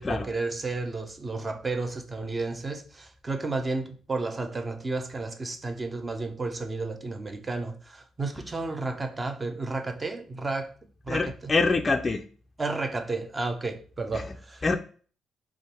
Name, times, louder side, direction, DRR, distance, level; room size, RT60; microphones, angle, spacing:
voice 1, 0.0-10.7 11.0-11.5 12.6-14.6, right 3 dB, 25° right, 0.8 m, -32 dB
voice 2, 11.1-12.2 14.1-14.2 14.6-14.8, left 3 dB, 30° left, 0.4 m, -25 dB
3.7 x 3.0 x 4.4 m
cardioid pair, 90°, 0 cm